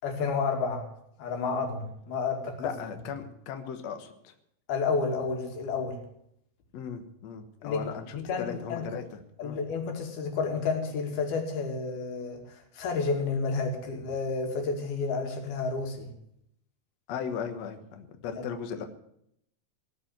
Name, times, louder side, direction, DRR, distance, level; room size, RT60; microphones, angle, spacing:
voice 1, 0.0-0.9 1.2-2.7 4.7-6.0 7.6-7.9 8.1-8.9 9.4-16.1, left 4 dB, 75° left, 4.3 m, -30 dB
voice 2, 2.6-4.3 6.7-9.0 9.4-9.6 17.1-18.9, left 7 dB, 60° left, 2.0 m, -37 dB
19.0 x 7.3 x 9.2 m
omnidirectional pair, 4.4 m